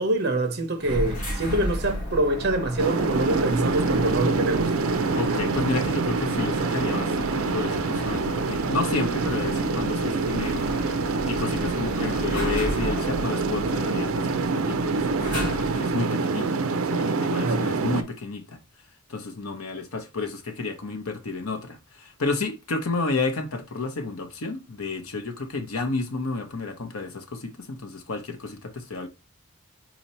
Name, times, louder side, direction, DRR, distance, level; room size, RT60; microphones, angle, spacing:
voice 1, 0.0-4.7 17.3-17.9, right 2 dB, 50° right, 0.9 m, -25 dB
sound 1, 0.8-16.0, equal, 40° left, 2.4 m, -33 dB
sound 2, 2.8-18.0, right 4 dB, 75° right, 0.5 m, -26 dB
voice 2, 5.1-10.7 11.2-16.6 16.9-18.6 19.1-29.1, left 3 dB, 80° left, 0.8 m, -31 dB
4.3 x 2.8 x 4.2 m
head